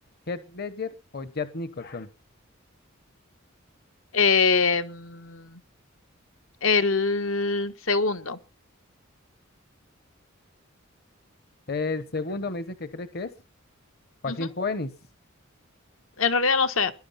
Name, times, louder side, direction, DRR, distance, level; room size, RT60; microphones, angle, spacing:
voice 1, 0.3-2.1 11.7-13.3 14.2-14.9, left 3 dB, 50° left, 12 dB, 1.1 m, -32 dB
voice 2, 4.1-5.6 6.6-8.4 14.3-14.5 16.2-16.9, left 4 dB, 75° left, 10 dB, 1.4 m, -23 dB
19.5 x 11.0 x 5.7 m, 0.34 s
head